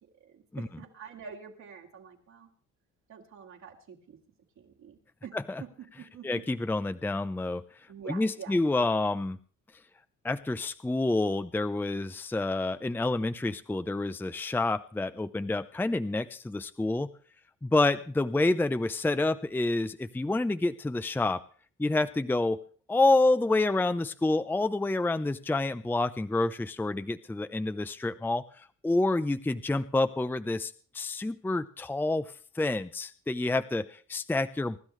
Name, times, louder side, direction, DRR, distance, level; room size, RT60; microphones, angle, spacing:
voice 1, 0.2-2.5 3.1-4.2 4.6-5.3 6.0-6.4 7.9-8.6, right 7 dB, 70° right, -2 dB, 2.4 m, -46 dB
voice 2, 6.2-7.6 8.1-9.4 10.2-17.1 17.6-21.4 21.8-22.6 22.9-32.2 32.5-34.8, left 2 dB, 5° left, 12 dB, 0.5 m, -28 dB
25.0 x 11.5 x 3.2 m, 0.42 s
cardioid pair, 90°, 30 cm